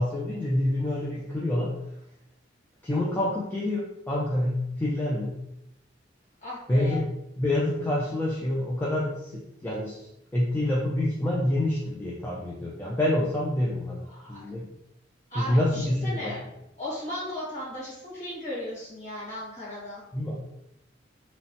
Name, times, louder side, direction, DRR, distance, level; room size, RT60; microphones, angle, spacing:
voice 1, 0.0-1.7 2.8-5.4 6.7-7.0 7.4-10.0 10.3-14.0 14.3-14.7 15.4-16.3 20.1-20.4, left 1 dB, 10° left, -6 dB, 0.3 m, -27 dB
voice 2, 6.4-7.0 14.0-14.4 15.3-16.4 16.8-20.0, left 1 dB, 40° left, -8 dB, 1.4 m, -36 dB
3.0 x 2.0 x 2.8 m, 0.84 s
head